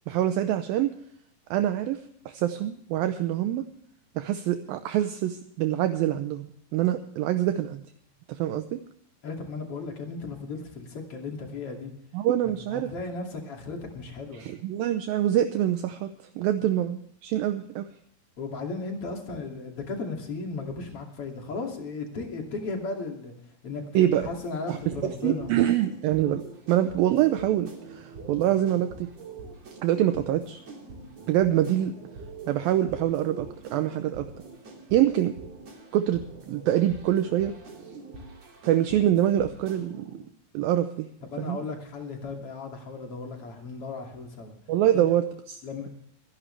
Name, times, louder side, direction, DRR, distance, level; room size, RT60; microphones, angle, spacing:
voice 1, 0.1-0.9 1.5-3.6 4.2-7.8 8.3-8.8 12.1-12.9 14.3-17.9 23.9-24.3 24.7-29.1 29.8-30.6 31.3-31.9 32.5-34.3 34.9-35.4 35.9-37.5 38.6-40.2 40.5-41.1 41.4-41.6 44.7-45.9, right 12 dB, 75° right, 8 dB, 2.3 m, -25 dB
voice 2, 9.2-11.9 12.7-14.5 18.4-23.3 23.6-25.5 28.3-28.4 41.2-44.6 45.6-45.9, left 3 dB, 40° left, 2 dB, 3.0 m, -35 dB
sound 1, 24.2-40.2, right 3 dB, 45° right, 3.5 m, -44 dB
24.5 x 11.0 x 3.3 m, 0.68 s
omnidirectional pair, 4.7 m